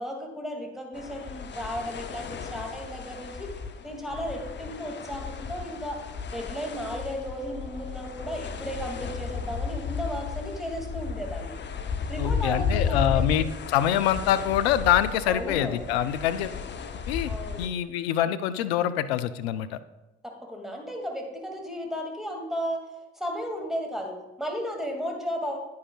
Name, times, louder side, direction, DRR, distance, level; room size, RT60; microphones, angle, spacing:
voice 1, 0.0-3.5 3.8-6.0 6.3-11.6 12.1-13.5 15.3-16.0 17.3-17.7 20.2-22.8 23.2-25.6, equal, ahead, 1 dB, 2.2 m, -34 dB
sound 1, 0.9-17.7, left 5 dB, 35° left, 0.8 m, -34 dB
voice 2, 12.2-16.5 17.1-17.3 17.6-19.8, left 11 dB, 80° left, 12 dB, 0.5 m, -25 dB
9.9 x 9.4 x 2.3 m, 1.0 s
hypercardioid pair, 50°, 31 cm